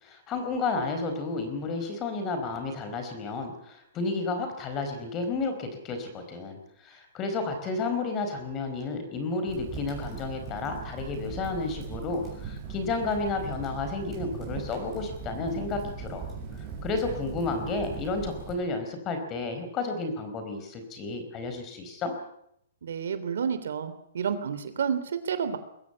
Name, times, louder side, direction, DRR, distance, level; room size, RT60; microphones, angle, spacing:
voice 1, 0.0-16.2 16.8-22.1, left 3 dB, 20° left, 7 dB, 4.4 m, -32 dB
Crackle, 9.5-18.5, right 5 dB, 15° right, 7.3 m, -39 dB
voice 2, 22.8-25.6, right 7 dB, 75° right, 11 dB, 3.4 m, -30 dB
22.0 x 15.5 x 9.9 m, 0.75 s
hypercardioid pair, 165°, 0 cm